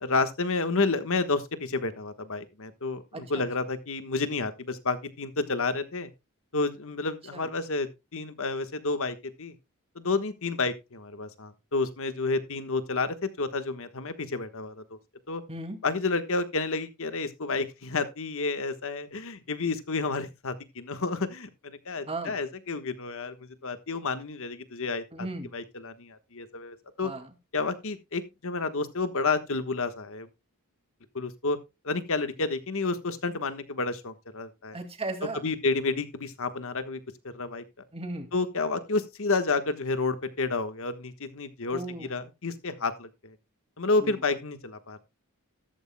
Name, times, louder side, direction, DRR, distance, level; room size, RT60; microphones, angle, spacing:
voice 1, 0.0-6.1 6.5-9.5 9.9-15.0 15.3-15.4 15.8-25.3 25.5-27.1 27.5-30.3 31.1-31.6 31.8-34.8 35.3-37.0 37.3-37.6 38.3-43.3 43.8-45.0, left 3 dB, 65° left, 1.3 m, -30 dB
voice 2, 25.1-25.5 27.0-27.2 34.7-35.4 37.9-38.3 41.7-42.1 44.0-44.1, right 2 dB, 25° right, 2.2 m, -35 dB
13.5 x 12.5 x 2.2 m
head